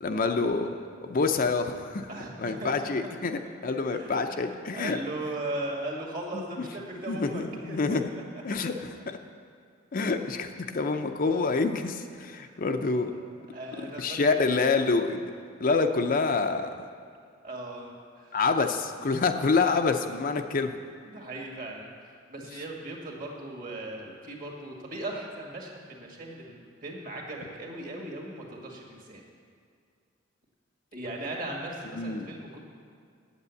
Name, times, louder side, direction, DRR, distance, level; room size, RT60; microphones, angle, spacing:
voice 1, 0.0-0.7 1.0-2.1 2.4-5.0 6.3-6.7 7.1-8.1 8.4-9.2 9.9-13.1 14.0-15.3 15.6-16.7 18.3-20.8 31.9-32.3, left 4 dB, 45° left, 6 dB, 0.5 m, -27 dB
voice 2, 2.1-2.9 3.9-8.0 8.3-8.4 10.2-10.3 12.2-13.3 13.5-14.5 16.3-16.4 17.4-18.3 21.0-21.9 22.3-29.2 30.9-32.6, right 1 dB, 45° right, 0 dB, 1.9 m, -38 dB
8.2 x 8.0 x 8.2 m, 2.2 s
head